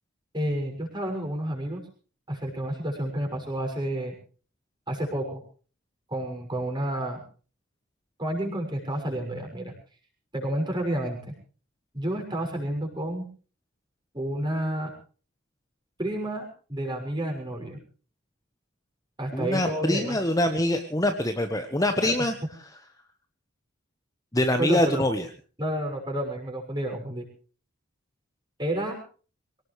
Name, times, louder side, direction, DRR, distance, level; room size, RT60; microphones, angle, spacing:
voice 1, 0.3-1.8 2.3-4.1 4.9-5.4 6.1-7.2 8.2-9.7 10.3-11.3 11.9-13.3 14.1-14.9 16.0-17.8 19.2-20.2 22.0-22.3 24.6-25.1 25.6-27.2 28.6-29.0, right 1 dB, 20° right, 2 dB, 6.2 m, -30 dB
voice 2, 19.3-22.3 24.3-25.2, left 1 dB, 15° left, 6 dB, 1.2 m, -24 dB
24.0 x 18.0 x 3.2 m, 0.39 s
head